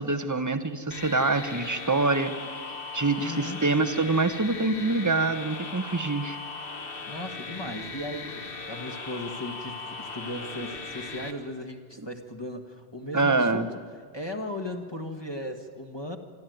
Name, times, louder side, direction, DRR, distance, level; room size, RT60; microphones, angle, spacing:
voice 1, 0.0-2.4 2.9-6.4 13.1-13.7, right 3 dB, 20° right, 11 dB, 0.9 m, -25 dB
sound 1, 0.9-11.3, left 4 dB, 60° left, 1.5 m, -38 dB
voice 2, 3.1-3.6 7.1-13.7 14.1-16.2, left 1 dB, 25° left, 5 dB, 1.5 m, -37 dB
25.5 x 13.0 x 9.2 m, 2.2 s
omnidirectional pair, 1.1 m